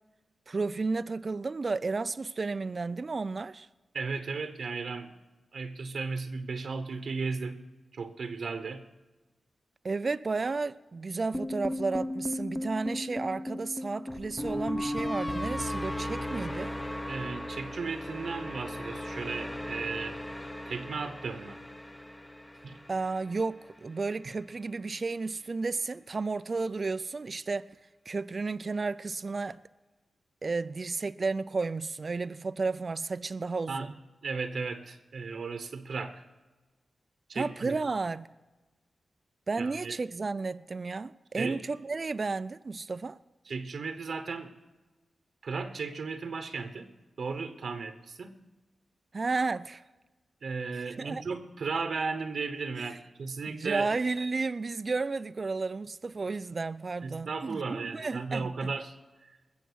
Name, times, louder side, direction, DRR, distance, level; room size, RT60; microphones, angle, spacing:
voice 1, 0.5-3.7 9.8-16.8 22.9-27.7 28.1-29.6 30.4-33.9 37.3-38.3 39.5-43.2 49.1-49.8 50.8-51.2 52.8-52.9 53.5-58.7, right 3 dB, 45° right, 0.4 m, -32 dB
voice 2, 3.9-5.1 5.5-7.6 7.9-8.8 17.1-21.6 22.6-22.8 33.7-33.9 34.2-36.2 37.3-37.8 39.6-40.0 41.3-41.6 43.4-44.5 45.4-46.9 47.2-48.3 50.4-53.9 57.0-58.9 59.2-59.3, right 4 dB, 70° right, 0.9 m, -35 dB
sound 1, 11.3-23.5, left 1 dB, 10° left, 0.8 m, -36 dB
20.5 x 7.4 x 6.3 m
cardioid pair, 80°, 0 cm